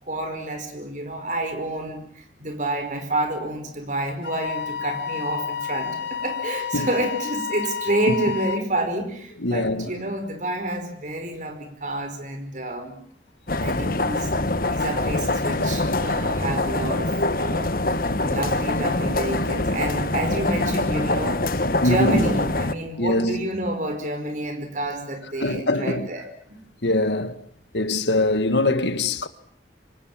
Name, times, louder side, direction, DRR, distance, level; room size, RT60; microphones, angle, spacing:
voice 1, 0.0-13.0 13.6-14.3 14.7-17.7 18.2-21.4 21.8-26.6, right 1 dB, 45° right, 5.0 m, -28 dB
Wind instrument woodwind instrument, 4.2-8.7, left 7 dB, 70° left, 2.0 m, -30 dB
voice 2, 9.4-9.9 17.9-18.3 21.8-22.2 23.0-23.5 25.4-26.1 26.8-27.4 27.7-29.3, left 2 dB, 90° left, 1.8 m, -23 dB
sound 1, 13.5-22.7, left 2 dB, 55° left, 1.5 m, -24 dB
27.0 x 26.5 x 7.5 m
head